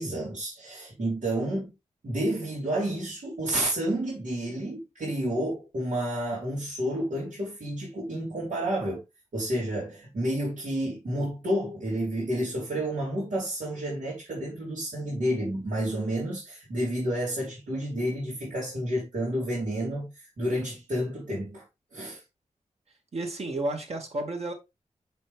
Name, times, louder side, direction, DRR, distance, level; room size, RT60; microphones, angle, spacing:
voice 1, 0.0-1.7 2.0-9.0 9.3-21.6 21.9-22.2, right 1 dB, 80° right, 3.6 m, -30 dB
voice 2, 23.1-24.5, right 2 dB, 55° right, 2.5 m, -31 dB
6.4 x 6.1 x 3.5 m
wide cardioid pair, 90°, 13 cm